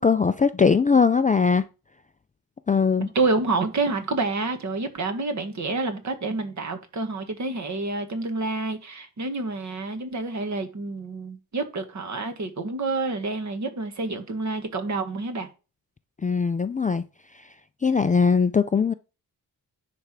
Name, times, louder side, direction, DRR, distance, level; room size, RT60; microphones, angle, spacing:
voice 1, 0.0-1.6 2.7-3.1 16.2-17.0 17.3-17.5 17.8-18.9, left 5 dB, 20° left, 0.4 m, -20 dB
voice 2, 3.0-15.5, right 3 dB, 50° right, 1.6 m, -28 dB
10.0 x 3.5 x 6.1 m
wide cardioid pair, 115°, 38 cm